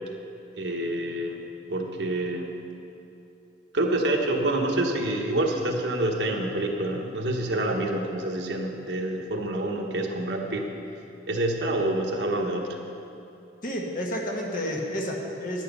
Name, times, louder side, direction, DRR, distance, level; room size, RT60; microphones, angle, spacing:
voice 1, 0.5-2.5 3.7-10.7 11.3-12.8, right 1 dB, 70° right, 1 dB, 1.2 m, -27 dB
voice 2, 13.6-15.6, equal, 50° left, 0 dB, 1.5 m, -30 dB
10.0 x 9.1 x 5.5 m, 2.8 s
head